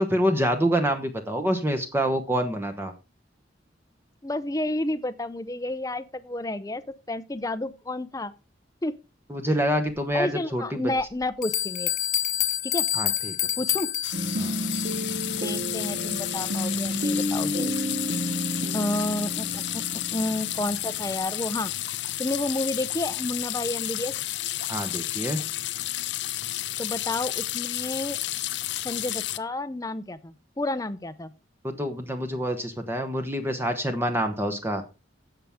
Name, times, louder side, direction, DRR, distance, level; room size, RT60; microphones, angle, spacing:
voice 1, 0.0-2.9 9.3-10.8 12.9-13.3 14.4-14.5 24.7-25.4 31.6-34.8, equal, 10° right, 1.0 m, -26 dB
voice 2, 4.2-6.8 7.1-8.3 8.8-8.9 9.5-9.6 10.1-11.9 12.6-12.8 13.6-13.9 15.4-17.7 18.7-21.7 22.2-24.1 26.8-28.2 28.8-31.3, left 2 dB, 20° left, 0.6 m, -30 dB
sound 1, 11.0-11.1 11.4-15.1, left 11 dB, 40° left, 1.1 m, -28 dB
sound 2, 14.0-29.4, left 15 dB, 65° left, 0.5 m, -31 dB
sound 3, 14.1-21.3, equal, 50° right, 0.8 m, -31 dB
15.5 x 5.8 x 3.6 m
head